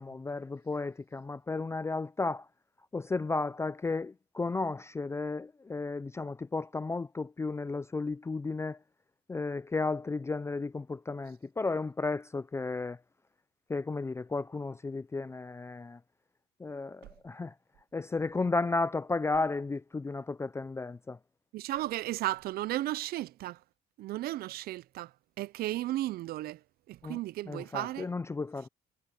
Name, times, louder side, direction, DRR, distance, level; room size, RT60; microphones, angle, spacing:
voice 1, 0.0-2.5 2.9-8.8 9.3-13.0 13.7-16.0 16.6-17.5 17.9-21.2 27.0-27.2 27.5-28.7, left 3 dB, 15° left, 0.4 m, -33 dB
voice 2, 21.5-23.6 24.0-25.1 25.4-26.6 26.9-28.1, right 15 dB, 65° right, 0.5 m, -34 dB
cardioid pair, 110°, 17 cm